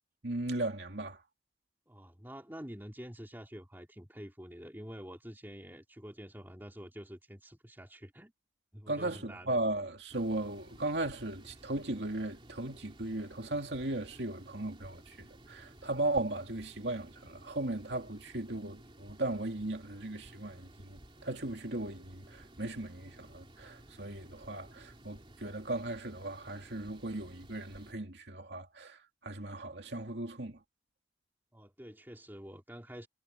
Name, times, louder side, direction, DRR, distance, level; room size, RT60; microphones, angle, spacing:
voice 1, 0.2-1.2 8.9-30.6, right 2 dB, 65° right, 2.6 m, -37 dB
voice 2, 1.9-8.3 8.7-9.5 31.5-33.1, equal, 10° right, 3.1 m, -47 dB
sound 1, 10.1-27.9, right 1 dB, 30° right, 3.2 m, -56 dB
head